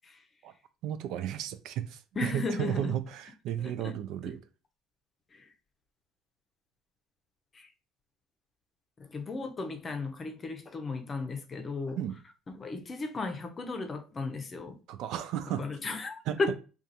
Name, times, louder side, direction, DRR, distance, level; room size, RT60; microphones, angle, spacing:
voice 1, 0.8-4.4 12.0-12.2 14.9-15.7 16.3-16.4, right 10 dB, 70° right, 0.3 m, -34 dB
voice 2, 2.2-2.9 3.6-4.0 4.2-4.3 5.3-5.5 7.5-7.7 9.0-12.0 12.6-14.8 15.6-16.6, left 3 dB, 35° left, 0.6 m, -35 dB
2.4 x 2.3 x 2.7 m
supercardioid pair, 75°, 0 cm